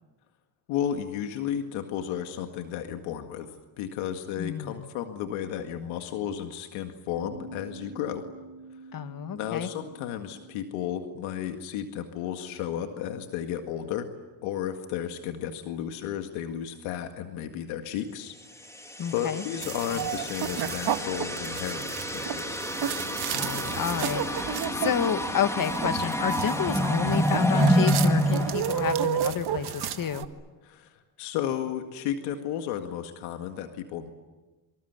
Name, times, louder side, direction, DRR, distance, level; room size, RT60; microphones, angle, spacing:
voice 1, 0.7-8.3 9.3-14.1 14.4-18.3 19.1-22.6 30.6-34.1, left 10 dB, 85° left, 6 dB, 2.0 m, -33 dB
voice 2, 4.4-4.9 8.9-9.7 19.0-19.4 23.3-30.3, left 8 dB, 45° left, 10 dB, 1.9 m, -30 dB
Bass guitar, 7.1-13.4, right 3 dB, 15° right, 3.6 m, -48 dB
sound 1, 18.8-29.5, equal, 5° left, 2.8 m, -28 dB
sound 2, 19.6-30.3, right 10 dB, 55° right, 1.8 m, -32 dB
27.0 x 25.5 x 8.2 m, 1.2 s
cardioid pair, 95°, 47 cm